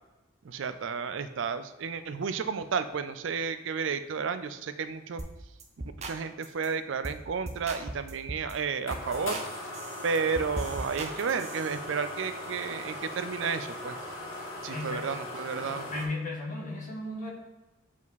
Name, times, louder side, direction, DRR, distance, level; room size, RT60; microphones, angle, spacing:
voice 1, 0.4-5.2 6.1-9.4 10.0-14.0 14.6-15.9, right 5 dB, 65° right, 11 dB, 0.4 m, -32 dB
sound 1, 5.2-5.3 5.6-6.2 6.4-6.7 7.0-7.2 7.5-8.5 8.9-9.5 9.7-11.8, right 2 dB, 35° right, 0.8 m, -38 dB
sound 2, 8.3-16.1, left 1 dB, 75° left, 1.7 m, -39 dB
voice 2, 14.6-15.1 15.6-17.3, left 2 dB, 40° left, -1 dB, 1.4 m, -36 dB
7.2 x 4.8 x 4.1 m, 1.1 s
head